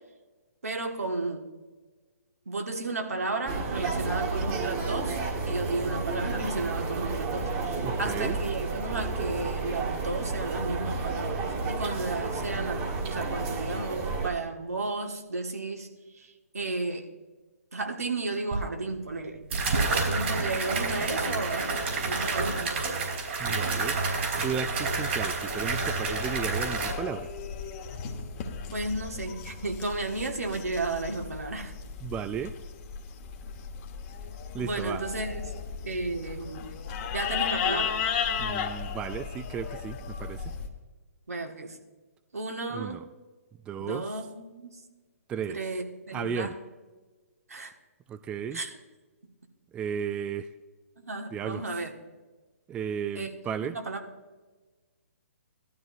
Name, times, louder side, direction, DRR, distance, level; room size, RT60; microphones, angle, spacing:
voice 1, 0.6-1.4 2.4-5.2 5.5-15.9 16.2-17.1 17.7-19.4 19.9-22.8 28.7-31.7 34.6-35.4 35.8-36.7 37.1-37.9 41.3-41.8 42.3-43.0 43.8-44.8 45.5-46.6 47.5-47.7 48.5-48.7 51.0-51.9 53.1-53.4 53.8-54.0, right 3 dB, 75° right, 4 dB, 1.6 m, -33 dB
sound 1, 3.5-14.3, right 3 dB, 30° right, 1.8 m, -31 dB
voice 2, 7.8-8.4 23.4-24.0 24.4-27.3 32.0-32.6 34.5-35.0 38.4-40.5 42.7-43.0 43.7-44.1 45.3-45.6 46.1-46.5 48.1-48.6 49.7-50.5 51.3-51.6 52.7-53.8, right 7 dB, 10° right, 12 dB, 0.3 m, -34 dB
sound 2, 18.5-18.6 19.5-26.9, right 3 dB, 55° right, 3.5 m, -29 dB
sound 3, 25.5-40.7, left 6 dB, 35° left, 1.3 m, -35 dB
17.5 x 12.5 x 2.6 m, 1.3 s
figure-of-eight pair, 130°, 8 cm